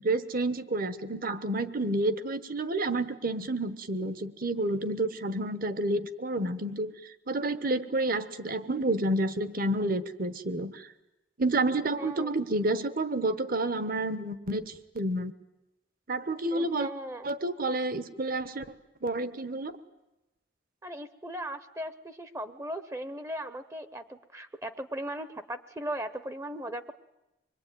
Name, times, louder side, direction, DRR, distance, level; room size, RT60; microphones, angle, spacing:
voice 1, 0.0-6.9 7.3-10.9 11.4-15.3 16.1-16.9 17.2-18.7 19.0-19.7, right 2 dB, 50° right, 13 dB, 1.3 m, -29 dB
voice 2, 12.0-12.3 16.5-17.3 20.8-26.9, right 1 dB, 15° right, 11 dB, 0.9 m, -38 dB
25.5 x 21.5 x 9.4 m, 0.97 s
head